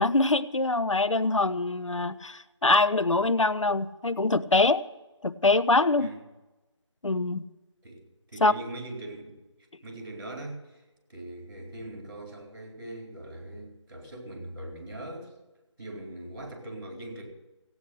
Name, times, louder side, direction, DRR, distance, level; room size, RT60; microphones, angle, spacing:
voice 1, 0.0-4.8 5.2-6.1 7.0-7.4 8.4-8.5, left 2 dB, 90° left, 14 dB, 0.8 m, -24 dB
voice 2, 7.8-9.4 9.8-10.8 11.1-15.3 15.8-17.3, right 1 dB, 40° right, 1 dB, 4.2 m, -41 dB
15.5 x 9.0 x 6.6 m, 1.1 s
figure-of-eight pair, 170°, 16 cm